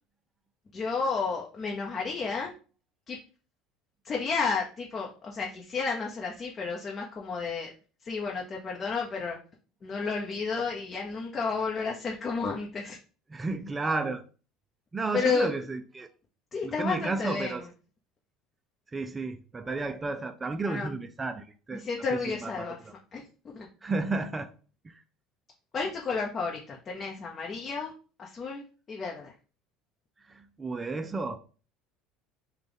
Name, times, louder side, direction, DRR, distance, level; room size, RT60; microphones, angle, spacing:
voice 1, 0.7-2.5 3.1-3.2 4.0-7.7 8.0-9.4 9.8-13.0 15.1-15.5 16.5-17.5 20.7-20.9 21.7-22.8 23.1-23.2 23.5-23.7 25.7-27.9 28.2-29.3, left 4 dB, 35° left, 0.8 m, -31 dB
voice 2, 13.3-14.2 14.9-16.1 16.6-17.7 18.9-21.8 22.1-22.9 23.8-24.5 24.8-25.0 30.2-31.4, right 3 dB, 20° right, 0.4 m, -32 dB
3.4 x 2.3 x 3.8 m
supercardioid pair, 90°, 0 cm